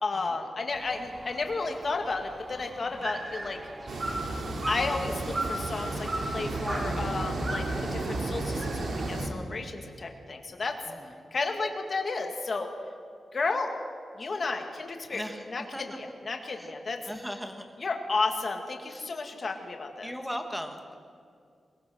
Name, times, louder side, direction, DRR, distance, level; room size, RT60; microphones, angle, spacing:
voice 1, 0.0-3.6 4.7-7.7 7.9-10.8 11.3-12.7 13.3-13.7 14.2-17.1 17.8-20.1, left 3 dB, 40° left, 3 dB, 2.3 m, -32 dB
sound 1, 0.7-8.7, right 1 dB, 20° right, 3.0 m, -38 dB
sound 2, 3.9-9.3, right 2 dB, 70° right, 3.0 m, -33 dB
voice 2, 15.1-15.8 16.6-16.7 17.1-17.7 18.9-19.0 20.0-21.0, equal, ahead, 5 dB, 1.7 m, -38 dB
22.0 x 21.5 x 6.4 m, 2.3 s
wide cardioid pair, 160°, 0 cm